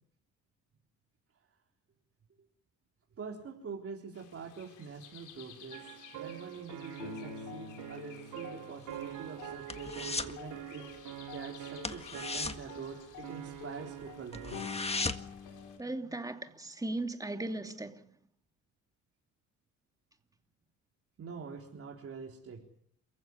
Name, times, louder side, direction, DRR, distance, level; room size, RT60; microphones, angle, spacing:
voice 1, 3.2-11.0 11.3-14.7 21.2-22.7, right 5 dB, 50° right, 4.0 m, -45 dB
sound 1, 4.2-15.8, left 7 dB, 85° left, 4.1 m, -48 dB
sound 2, 5.7-15.2, right 14 dB, 80° right, 1.1 m, -46 dB
sound 3, 8.8-10.4 10.7-11.0 11.3-11.4 11.8-13.6 14.0-14.1 14.3-15.4 15.8-15.9, left 3 dB, 20° left, 1.8 m, -37 dB
voice 2, 15.8-18.1, right 2 dB, 10° right, 2.7 m, -37 dB
28.5 x 15.5 x 9.9 m
cardioid pair, 90°, 30 cm